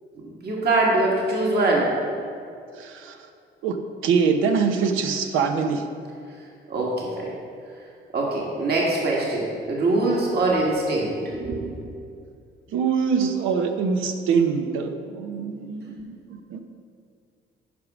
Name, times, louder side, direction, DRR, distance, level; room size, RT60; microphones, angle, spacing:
voice 1, 0.2-1.9 6.7-7.3 8.1-11.8, right 2 dB, 55° right, -3 dB, 1.9 m, -23 dB
voice 2, 2.8-3.2 3.6-3.8 4.0-5.8 12.7-16.2 16.5-16.6, right 6 dB, 85° right, 6 dB, 0.9 m, -23 dB
9.5 x 5.3 x 6.1 m, 2.4 s
cardioid pair, 90°, 20 cm